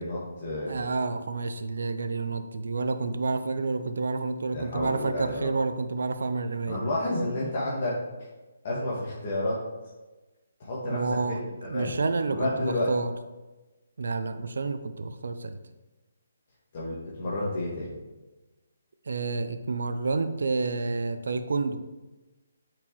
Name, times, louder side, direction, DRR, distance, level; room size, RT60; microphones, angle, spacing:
voice 1, 0.0-0.8 4.5-5.5 6.7-8.0 8.6-9.6 10.6-11.4 11.7-11.9 12.3-12.9 16.7-17.9, left 1 dB, 50° left, -6 dB, 1.6 m, -30 dB
voice 2, 0.7-6.8 10.8-13.1 14.0-15.6 19.1-21.8, right 3 dB, 70° right, 10 dB, 0.5 m, -29 dB
8.7 x 4.6 x 3.1 m, 1.1 s
figure-of-eight pair, 145°, 0 cm